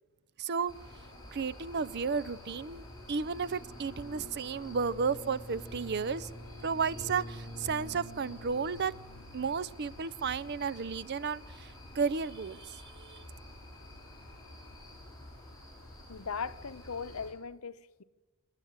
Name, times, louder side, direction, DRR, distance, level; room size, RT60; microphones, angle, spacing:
voice 1, 0.4-0.7 1.3-6.3 6.6-8.9 9.3-11.7 11.9-13.2, right 5 dB, 50° right, 0.6 m, -33 dB
sound 1, 0.7-17.3, left 1 dB, 20° left, 7.5 m, -48 dB
voice 2, 16.1-18.0, left 5 dB, 85° left, 0.9 m, -39 dB
26.5 x 10.5 x 9.5 m
head